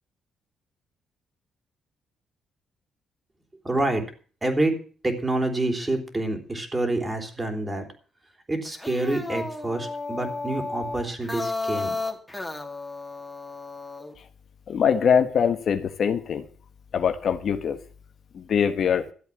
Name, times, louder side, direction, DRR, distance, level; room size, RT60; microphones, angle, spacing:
voice 1, 3.6-4.0 4.4-4.8 5.0-7.9 8.5-11.9, right 2 dB, 20° right, 4 dB, 3.8 m, -27 dB
sound 1, 8.6-14.1, left 3 dB, 10° left, 2.6 m, -33 dB
voice 2, 14.7-16.4 16.9-17.8 18.3-19.1, left 7 dB, 60° left, 8 dB, 1.4 m, -23 dB
13.5 x 8.2 x 8.6 m, 0.41 s
cardioid pair, 105°, 0 cm